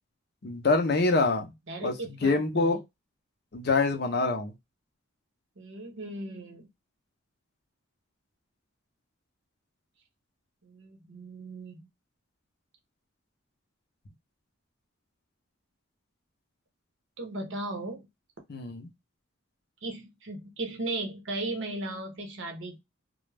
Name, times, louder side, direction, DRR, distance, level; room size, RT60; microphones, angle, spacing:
voice 1, 0.4-1.5 1.8-2.8 3.5-4.5 18.5-18.9, left 3 dB, 50° left, 0.5 m, -25 dB
voice 2, 1.7-2.7 5.6-6.7 10.6-11.9 17.2-18.1 19.8-22.8, right 2 dB, 60° right, 0.7 m, -37 dB
2.2 x 2.0 x 3.2 m
head